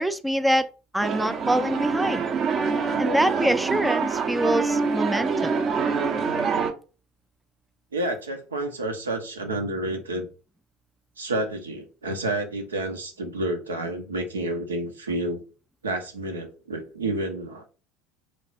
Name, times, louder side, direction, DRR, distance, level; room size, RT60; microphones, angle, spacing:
voice 1, 0.0-2.2 3.0-5.6, equal, 5° right, 0.4 m, -25 dB
sound 1, 1.0-6.7, right 5 dB, 40° right, 0.7 m, -25 dB
voice 2, 7.9-10.3 11.2-15.4 15.8-17.7, right 2 dB, 80° right, 0.8 m, -29 dB
3.9 x 3.3 x 4.0 m
figure-of-eight pair, 70°, 0 cm